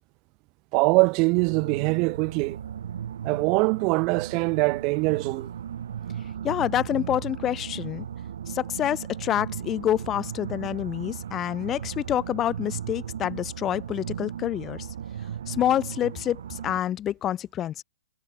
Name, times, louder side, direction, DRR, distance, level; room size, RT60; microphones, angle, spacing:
voice 1, 0.7-2.6 3.2-5.5, right 29 dB, 35° right, 0.3 m, -23 dB
sound 1, 1.3-16.8, right 9 dB, 70° right, 2.0 m, -36 dB
voice 2, 6.4-8.1 8.5-14.9 15.5-17.8, left 11 dB, 20° left, 0.6 m, -27 dB
hypercardioid pair, 135°, 0 cm